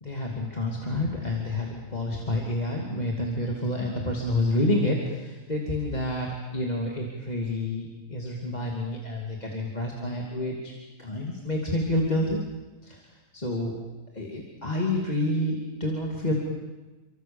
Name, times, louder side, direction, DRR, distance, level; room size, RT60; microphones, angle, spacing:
voice 1, 0.0-10.7 11.0-12.4 12.8-13.0 13.3-13.8 14.1-16.3, left 1 dB, 25° left, -1 dB, 3.0 m, -28 dB
30.0 x 24.5 x 7.3 m, 1.2 s
omnidirectional pair, 1.7 m